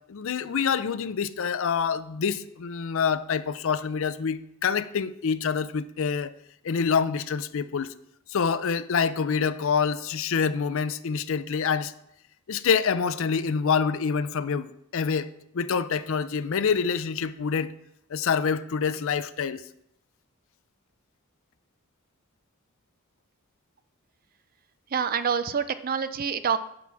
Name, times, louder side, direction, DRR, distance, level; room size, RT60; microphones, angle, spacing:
voice 1, 0.1-6.3 6.6-7.9 8.3-11.9 12.5-17.7 18.1-19.6, left 6 dB, 65° left, 0.5 m, -26 dB
voice 2, 24.9-26.6, right 7 dB, 40° right, 0.4 m, -26 dB
10.0 x 5.9 x 4.7 m
head